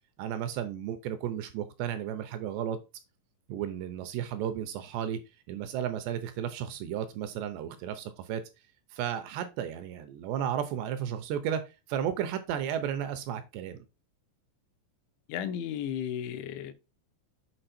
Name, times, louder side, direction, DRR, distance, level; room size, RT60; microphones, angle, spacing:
voice 1, 0.2-2.8 3.5-5.2 5.5-8.4 8.9-11.6 11.9-13.9, right 9 dB, 80° right, 2.7 m, -33 dB
voice 2, 15.3-16.7, left 9 dB, 80° left, 3.1 m, -34 dB
7.8 x 5.3 x 4.2 m
omnidirectional pair, 5.4 m